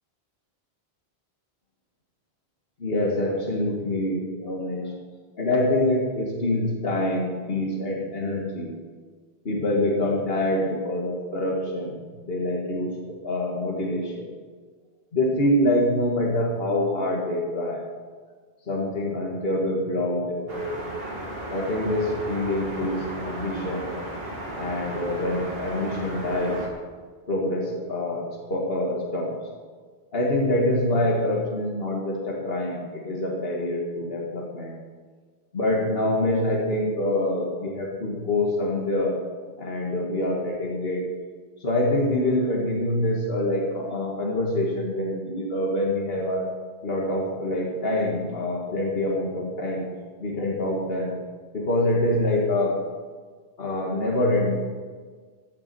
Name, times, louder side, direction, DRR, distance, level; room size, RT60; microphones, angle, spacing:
voice 1, 2.8-4.9 5.4-8.7 9.5-11.9 12.2-14.3 15.1-17.9 18.7-20.8 21.5-23.9 24.6-26.6 27.3-29.4 30.1-34.7 35.5-39.2 39.6-41.0 41.6-46.5 46.8-49.8 50.2-51.1 51.5-52.8 53.6-54.5, left 1 dB, 65° left, -1 dB, 2.1 m, -25 dB
sound 1, 20.5-26.7, right 1 dB, 65° right, 2.3 m, -35 dB
14.5 x 7.2 x 6.9 m, 1.5 s
omnidirectional pair, 1.1 m